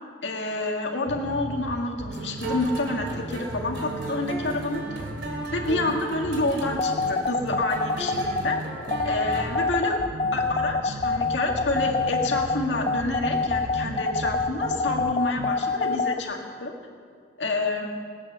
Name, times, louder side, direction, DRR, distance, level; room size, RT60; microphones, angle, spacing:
voice 1, 0.2-5.0 5.5-8.6 9.0-10.0 10.3-16.7 17.4-17.9, left 2 dB, 90° left, 1 dB, 2.0 m, -28 dB
sound 1, 1.1-15.5, right 2 dB, 65° right, 0.8 m, -37 dB
sound 2, 2.1-9.7, right 2 dB, 80° right, 2.7 m, -36 dB
sound 3, 6.8-16.2, left 4 dB, 35° left, 0.4 m, -25 dB
19.5 x 8.9 x 6.8 m, 2.2 s
head